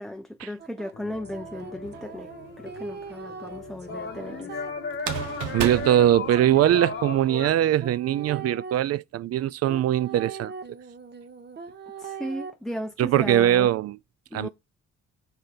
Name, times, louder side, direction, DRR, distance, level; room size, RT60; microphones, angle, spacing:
voice 1, 0.0-2.3 2.6-4.5 12.0-13.7 14.3-14.5, equal, ahead, 0.5 m, -35 dB
sound 1, 0.6-8.8 9.7-12.5, right 6 dB, 35° right, 1.0 m, -41 dB
sound 2, 0.9-7.5, left 5 dB, 40° left, 1.0 m, -37 dB
sound 3, 1.8-2.5 4.9-6.9, right 8 dB, 90° right, 1.0 m, -33 dB
voice 2, 5.5-10.5 13.0-14.0 14.3-14.5, right 12 dB, 55° right, 0.4 m, -21 dB
5.0 x 4.2 x 5.8 m
cardioid pair, 90°, 30 cm